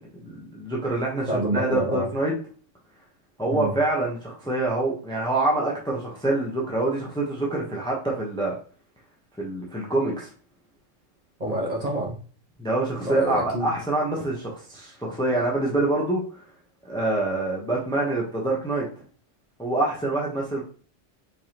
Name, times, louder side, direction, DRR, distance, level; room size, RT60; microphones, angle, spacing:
voice 1, 0.2-2.3 3.4-8.5 9.4-10.3 12.6-16.2 16.8-18.9 19.6-20.6, right 2 dB, 5° left, -3 dB, 0.9 m, -26 dB
voice 2, 1.3-2.1 3.5-3.8 11.4-12.2 13.0-13.7, right 1 dB, 35° right, -3 dB, 1.2 m, -27 dB
4.5 x 3.5 x 2.9 m, 0.42 s
omnidirectional pair, 1.2 m